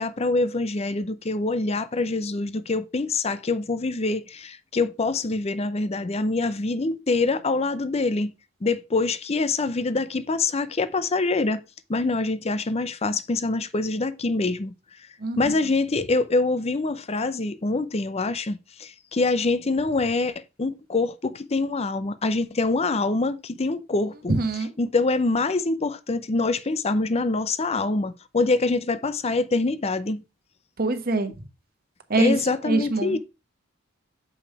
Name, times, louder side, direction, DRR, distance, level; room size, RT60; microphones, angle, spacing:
voice 1, 0.0-8.3 8.6-11.6 11.9-14.7 15.4-30.2 32.2-33.2, left 3 dB, 30° left, 0.5 m, -25 dB
voice 2, 15.2-15.5 24.3-24.7 30.8-31.3 32.1-32.3 32.7-33.2, right 2 dB, 45° right, 1.2 m, -23 dB
7.0 x 5.5 x 4.8 m
head